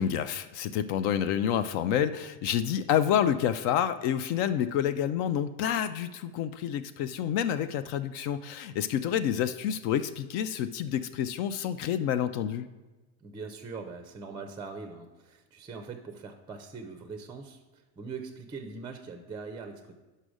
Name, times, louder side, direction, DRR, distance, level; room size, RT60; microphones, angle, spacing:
voice 1, 0.0-12.7, left 9 dB, 65° left, 11 dB, 0.5 m, -28 dB
voice 2, 13.2-19.9, right 4 dB, 15° right, 7 dB, 0.4 m, -42 dB
5.5 x 5.0 x 6.2 m, 1.2 s
cardioid pair, 135°, 36 cm